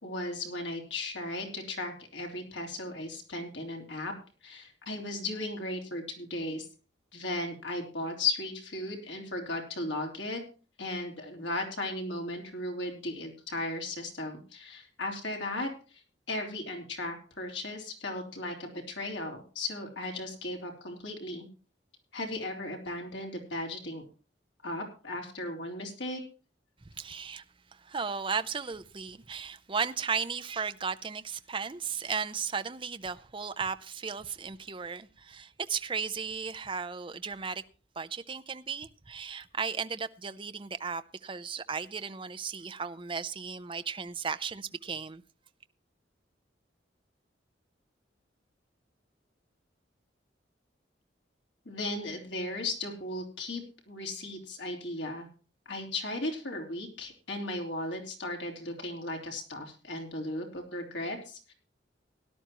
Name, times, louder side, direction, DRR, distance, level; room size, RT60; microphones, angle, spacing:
voice 1, 0.0-4.1 4.4-6.7 7.1-10.4 10.8-16.0 16.3-21.5 22.1-24.0 24.6-26.2 51.7-55.3 55.7-61.5, left 2 dB, 80° left, 3.6 m, -36 dB
voice 2, 27.0-27.4 27.7-37.6 38.0-45.2, right 5 dB, 30° right, 0.6 m, -35 dB
17.5 x 11.5 x 3.0 m
head